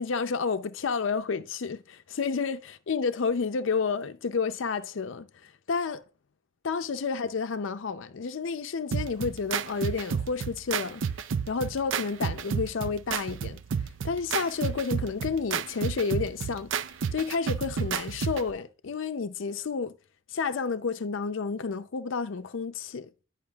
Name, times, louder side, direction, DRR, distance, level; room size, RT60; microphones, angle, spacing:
voice 1, 0.0-6.0 6.6-11.0 11.5-13.6 14.0-16.7 17.1-20.0 20.3-23.1, left 5 dB, 70° left, 0.5 m, -30 dB
sound 1, 8.9-18.5, right 6 dB, 65° right, 0.4 m, -31 dB
10.5 x 5.7 x 2.3 m
head